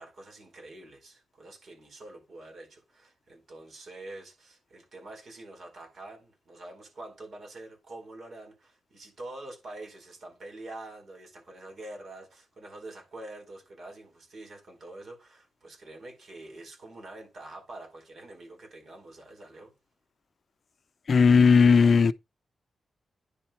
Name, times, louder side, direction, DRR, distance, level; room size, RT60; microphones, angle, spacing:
voice 1, 0.0-19.7, right 2 dB, 60° right, 4.6 m, -46 dB
voice 2, 21.1-22.1, left 5 dB, 55° left, 0.5 m, -17 dB
10.0 x 4.2 x 4.4 m
wide cardioid pair, 105°, 0 cm